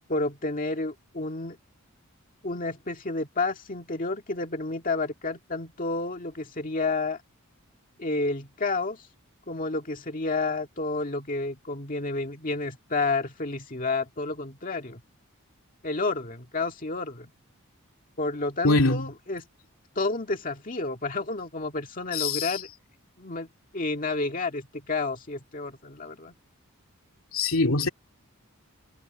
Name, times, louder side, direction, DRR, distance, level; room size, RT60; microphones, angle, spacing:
voice 1, 0.1-1.6 2.4-7.2 8.0-9.1 9.5-15.0 15.8-17.3 18.2-19.4 20.0-22.7 23.2-26.3, left 3 dB, 40° left, 1.9 m, -30 dB
voice 2, 18.6-19.1 22.1-22.6 27.3-27.9, left 3 dB, 70° left, 2.7 m, -23 dB
head